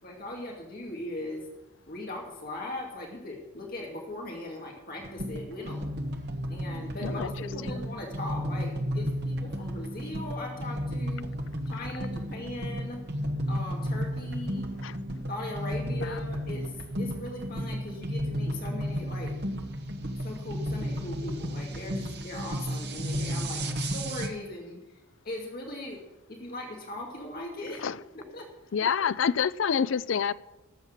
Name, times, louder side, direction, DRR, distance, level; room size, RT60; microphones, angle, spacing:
voice 1, 0.0-1.5 1.8-5.9 6.5-11.3 11.7-13.0 13.5-14.7 15.3-19.3 20.2-25.0 25.2-26.0 26.3-27.8 28.1-28.5, left 1 dB, 45° left, 2.3 m, -39 dB
sound 1, 5.0-24.3, equal, 50° right, 1.2 m, -33 dB
voice 2, 28.7-30.3, left 7 dB, 65° left, 0.4 m, -27 dB
13.0 x 7.3 x 8.2 m
head